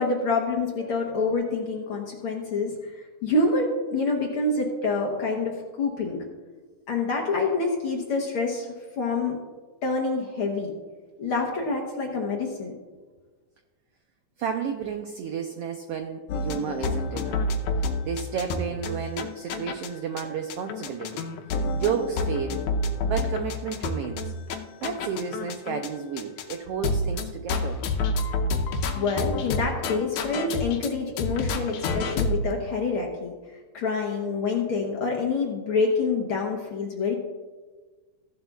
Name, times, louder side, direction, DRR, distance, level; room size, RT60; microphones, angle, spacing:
voice 1, 0.0-6.2 6.9-9.4 9.8-10.7 11.2-12.8 28.9-33.3 33.7-37.1, left 3 dB, 60° left, 0 dB, 1.5 m, -27 dB
voice 2, 14.4-17.4 18.1-21.2 21.7-22.6 23.0-24.3 24.8-27.8, right 7 dB, 85° right, 5 dB, 1.3 m, -31 dB
sound 1, 16.3-19.9 20.2-20.3 20.5-25.9 26.2-26.6 26.8-30.9 31.2-32.5, left 2 dB, 85° left, 2.2 m, -28 dB
15.5 x 11.0 x 2.4 m, 1.4 s
omnidirectional pair, 3.5 m